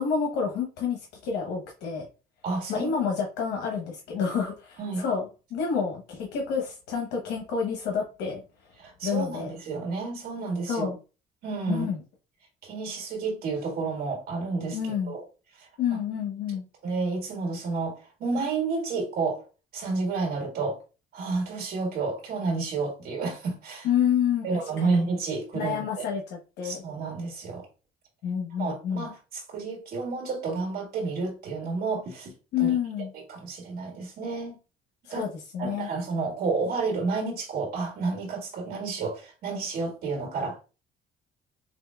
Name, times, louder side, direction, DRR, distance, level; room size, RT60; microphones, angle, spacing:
voice 1, 0.0-2.0 2.7-8.4 9.0-9.5 10.7-11.0 11.7-12.0 14.7-15.1 15.8-16.6 23.8-24.5 24.8-25.0 25.5-26.8 28.2-29.1 32.5-33.1 35.0-35.9, left 7 dB, 85° left, 1.0 m, -29 dB
voice 2, 2.4-2.9 4.8-5.0 8.8-10.9 11.4-11.9 12.6-14.8 15.1-15.2 16.8-19.4 19.7-20.8 21.1-23.9 24.4-26.1 26.6-27.7 28.6-32.3 32.6-32.7 33.1-34.6 35.1-35.3 35.6-40.6, right 4 dB, 65° right, 1.8 m, -30 dB
6.8 x 2.6 x 2.3 m
cardioid pair, 110°, 17 cm